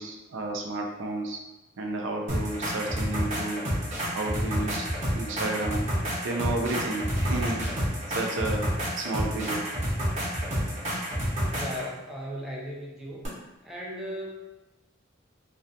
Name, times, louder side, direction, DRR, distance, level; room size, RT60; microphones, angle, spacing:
voice 1, 0.0-1.4 1.8-3.6 4.1-4.9 5.1-5.9 6.2-7.7 8.1-8.7 9.0-9.6, right 2 dB, 75° right, 1 dB, 0.4 m, -31 dB
sound 1, 2.3-11.9 13.2-13.3, equal, 35° right, 0.8 m, -29 dB
voice 2, 11.5-13.3 13.6-14.3, equal, ahead, -5 dB, 0.4 m, -37 dB
2.3 x 2.3 x 2.6 m, 1.0 s
head